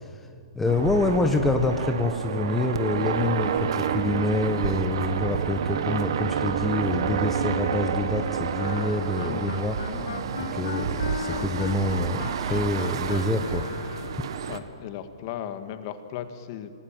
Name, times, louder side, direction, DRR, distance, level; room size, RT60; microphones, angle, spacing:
voice 1, 0.5-9.8 10.3-13.6, left 2 dB, 5° left, 5 dB, 1.2 m, -26 dB
sound 1, 0.6-14.6, right 7 dB, 65° right, 1.6 m, -29 dB
Wind instrument woodwind instrument, 8.5-14.3, left 6 dB, 80° left, 1.2 m, -37 dB
voice 2, 9.2-9.5 9.8-11.7 14.5-16.8, left 10 dB, 45° left, 9 dB, 1.8 m, -38 dB
26.0 x 18.0 x 9.1 m, 2.2 s
hypercardioid pair, 140°, 3 cm